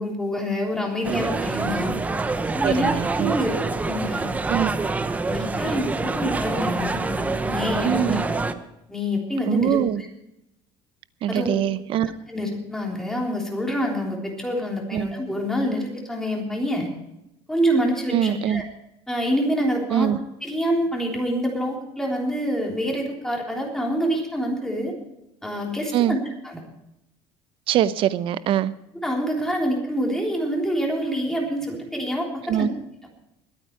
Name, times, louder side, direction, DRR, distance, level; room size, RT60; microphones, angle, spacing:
voice 1, 0.0-2.0 2.5-4.3 5.3-8.2 8.9-9.8 11.3-11.6 12.3-16.9 17.5-18.6 19.1-20.1 20.4-24.9 25.4-26.2 26.4-26.6 28.9-32.7, equal, 5° left, 0 dB, 3.6 m, -26 dB
sound 1, 1.0-8.5, right 3 dB, 15° right, 0.8 m, -26 dB
voice 2, 2.6-3.3 4.5-4.7 7.8-8.2 9.5-10.0 11.2-12.1 14.9-15.1 18.1-18.6 19.9-20.2 25.9-26.2 27.7-28.7 32.5-32.7, right 11 dB, 50° right, 16 dB, 0.7 m, -23 dB
21.5 x 8.9 x 4.7 m, 0.87 s
cardioid pair, 145°, 11 cm